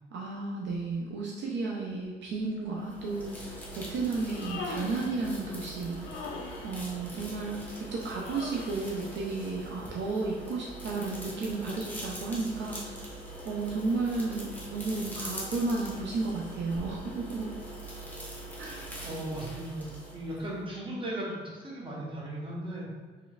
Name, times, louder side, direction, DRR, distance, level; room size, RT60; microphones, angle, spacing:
voice 1, 0.1-6.2 6.6-7.6 7.9-13.0 13.4-17.5 18.6-18.8, right 3 dB, 65° right, -2 dB, 0.5 m, -33 dB
sound 1, 2.8-20.6, right 1 dB, 10° left, 0.9 m, -42 dB
Human voice, 4.2-5.2 6.0-6.8 8.2-8.9, left 3 dB, 90° left, 0.4 m, -40 dB
voice 2, 19.0-22.9, right 1 dB, 25° right, -5 dB, 1.0 m, -37 dB
3.1 x 3.0 x 2.4 m, 1.5 s
cardioid pair, 90°, 20 cm